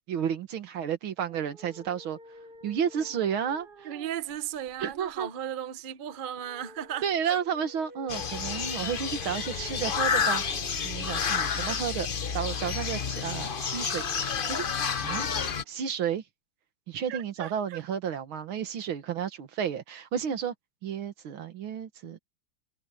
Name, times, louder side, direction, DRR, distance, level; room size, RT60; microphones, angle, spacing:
voice 1, 0.1-2.2 2.6-3.9 4.8-5.3 7.0-10.4 10.8-14.7 15.0-15.3 15.7-16.2 16.9-20.5 20.8-22.2, right 8 dB, 75° right, 2.2 m, -32 dB
sound 1, 1.3-16.2, right 2 dB, 30° right, 1.1 m, -51 dB
voice 2, 3.8-7.4 15.4-15.5 17.1-17.8, right 10 dB, 50° right, 0.5 m, -36 dB
sound 2, 8.1-15.6, left 6 dB, 70° left, 0.5 m, -30 dB
omnidirectional pair, 2.3 m